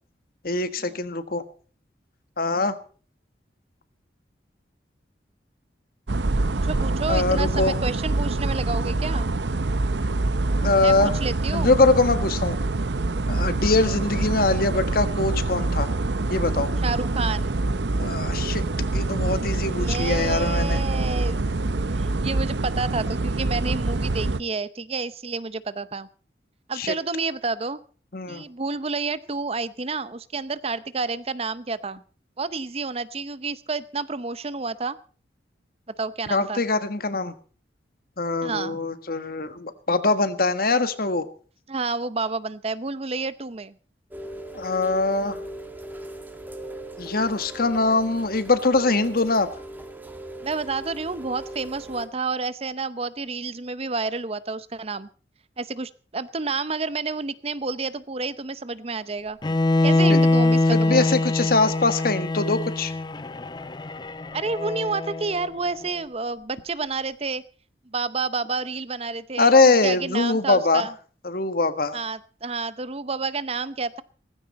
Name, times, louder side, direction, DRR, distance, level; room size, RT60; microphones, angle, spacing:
voice 1, 0.4-1.4 2.4-2.8 7.1-7.7 10.6-11.1 11.5-12.6 13.3-15.9 16.3-16.7 18.0-18.6 18.9-20.8 26.8-26.9 28.1-28.4 36.3-37.3 38.2-41.3 44.5-45.4 47.0-49.5 60.1-60.2 60.7-62.9 69.4-70.9 71.2-72.0, left 3 dB, 55° left, 11 dB, 1.6 m, -22 dB
sound 1, 6.1-24.4, right 2 dB, 75° right, 0.8 m, -25 dB
voice 2, 6.5-9.3 10.8-11.8 16.8-17.6 19.8-21.4 22.0-26.1 26.7-27.8 28.3-32.0 32.4-35.0 36.0-36.6 38.4-38.8 41.7-43.7 50.4-55.1 55.6-59.4 59.8-61.1 64.3-67.4 67.9-70.9 71.9-74.0, right 4 dB, 35° right, 16 dB, 0.7 m, -30 dB
Rain, 44.1-52.1, right 1 dB, 10° right, 2.0 m, -39 dB
Bowed string instrument, 59.4-65.5, left 2 dB, 25° left, 0.6 m, -23 dB
17.5 x 15.5 x 4.2 m, 0.41 s
head